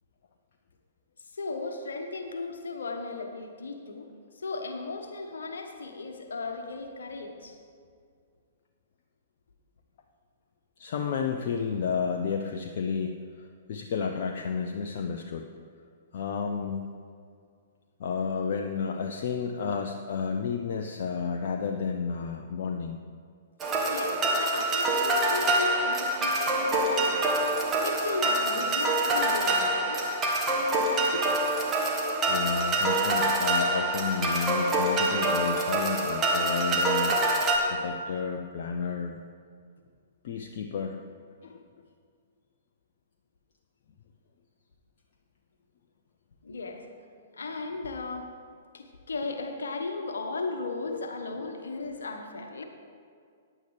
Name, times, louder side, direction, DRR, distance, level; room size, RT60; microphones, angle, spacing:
voice 1, 1.2-4.1 4.3-7.6 23.9-27.4 27.8-30.0 31.1-31.2 46.4-46.8 47.3-48.3 48.7-52.6, left 3 dB, 65° left, 5 dB, 1.3 m, -36 dB
voice 2, 10.8-15.5 16.1-16.9 18.0-23.0 32.3-37.2 37.7-39.2 40.2-41.0 41.4-41.6 51.4-51.6, left 6 dB, 50° left, 3 dB, 0.6 m, -31 dB
sound 1, 23.6-37.6, right 2 dB, 20° right, 1.5 m, -26 dB
15.5 x 9.9 x 3.4 m, 2.2 s
figure-of-eight pair, 110°, 0 cm